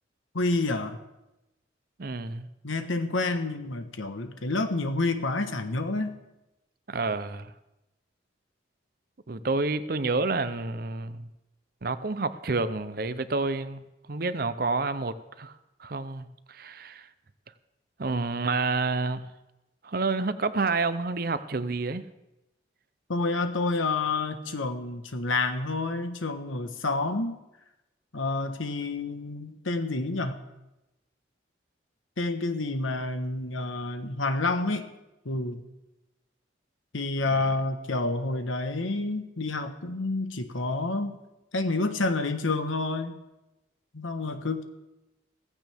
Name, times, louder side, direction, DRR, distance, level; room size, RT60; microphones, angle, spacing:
voice 1, 0.3-1.0 2.6-6.2 23.1-27.4 28.1-30.4 32.2-34.9 35.2-35.6 36.9-41.2 41.5-43.2 43.9-44.6, left 3 dB, 90° left, 8 dB, 1.3 m, -29 dB
voice 2, 2.0-2.5 6.9-7.5 9.3-11.3 11.8-13.8 14.1-15.5 15.8-17.1 18.0-19.3 19.8-22.1, right 3 dB, 50° right, 13 dB, 0.6 m, -29 dB
16.5 x 15.5 x 3.5 m, 0.96 s
head